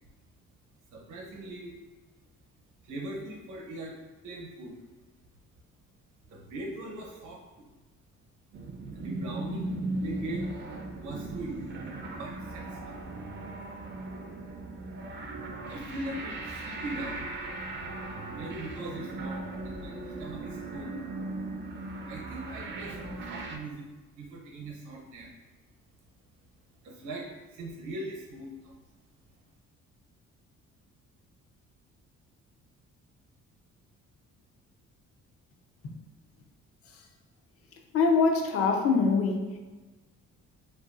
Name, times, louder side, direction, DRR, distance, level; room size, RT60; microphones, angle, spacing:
voice 1, 0.9-1.8 2.8-4.0 4.2-4.8 6.3-7.7 8.9-10.5 11.0-11.6 12.1-13.0 15.7-17.3 18.3-20.9 22.1-23.9 24.2-25.3 26.8-28.8, right 1 dB, 80° right, -1 dB, 0.8 m, -40 dB
sound 1, 8.5-23.6, right 2 dB, 40° right, 0.4 m, -38 dB
voice 2, 37.9-39.5, left 4 dB, 50° left, 2 dB, 0.5 m, -23 dB
2.5 x 2.3 x 2.4 m, 1.2 s
cardioid pair, 90°, 30 cm